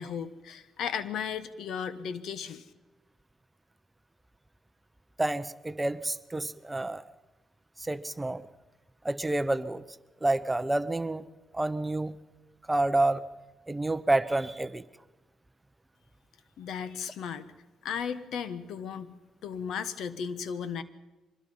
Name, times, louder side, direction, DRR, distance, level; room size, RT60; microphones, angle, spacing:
voice 1, 0.0-2.6 16.6-17.5 17.8-19.1 19.4-20.8, left 7 dB, 75° left, 14 dB, 1.2 m, -35 dB
voice 2, 5.2-7.0 7.8-8.5 9.0-9.8 10.2-11.2 11.5-12.1 12.7-13.2 13.7-14.8, right 2 dB, 15° right, 14 dB, 0.8 m, -28 dB
24.0 x 21.0 x 5.5 m, 1.1 s
cardioid pair, 90°, 0 cm